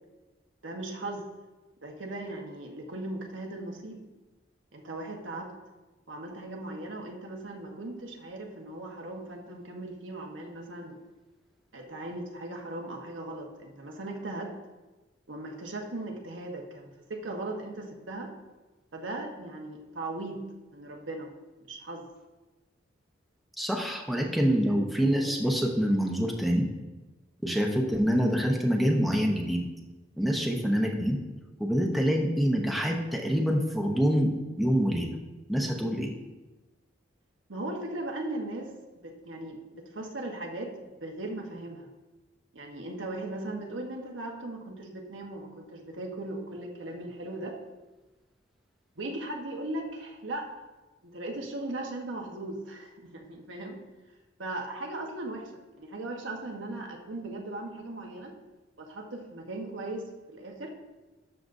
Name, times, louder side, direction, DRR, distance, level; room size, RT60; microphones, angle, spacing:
voice 1, 0.6-1.2 1.8-4.0 4.7-5.5 6.1-11.0 11.7-14.5 15.3-18.3 18.9-20.4 20.7-21.3 21.7-22.1 24.6-24.8 37.5-38.7 39.0-41.9 42.5-47.6 49.0-50.5 51.0-53.8 54.4-55.5 55.8-58.3 58.8-60.7, right 2 dB, 90° right, 1 dB, 1.2 m, -38 dB
voice 2, 23.6-26.7 27.4-29.7 30.2-31.2 31.6-35.1 35.5-36.1, equal, ahead, 0 dB, 0.8 m, -26 dB
12.5 x 6.8 x 2.6 m, 1.1 s
head